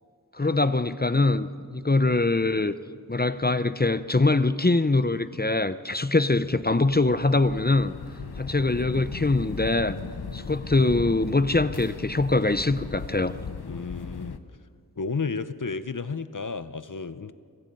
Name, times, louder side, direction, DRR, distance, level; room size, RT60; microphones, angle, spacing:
voice 1, 0.3-2.7 3.1-7.9 8.4-10.0 10.3-13.4, left 2 dB, 25° left, 13 dB, 0.7 m, -23 dB
sound 1, 6.4-14.4, left 5 dB, 90° left, 1.0 m, -37 dB
voice 2, 13.6-14.4 15.0-17.3, left 4 dB, 55° left, 13 dB, 0.9 m, -32 dB
27.0 x 23.0 x 5.5 m, 2.1 s
wide cardioid pair, 45°, 37 cm